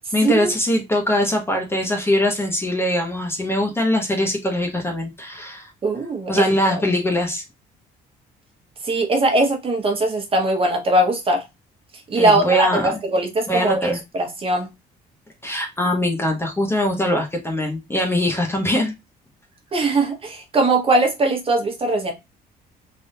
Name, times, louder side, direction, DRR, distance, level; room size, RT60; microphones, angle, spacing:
voice 1, 0.1-5.7 6.3-7.4 12.1-12.9 13.5-14.0 15.4-18.9, left 1 dB, 15° left, 0.7 m, -22 dB
voice 2, 5.8-6.8 8.8-11.4 12.1-14.7 19.7-22.1, right 2 dB, 35° right, 1.0 m, -20 dB
3.4 x 2.5 x 2.6 m
cardioid pair, 110°, 17 cm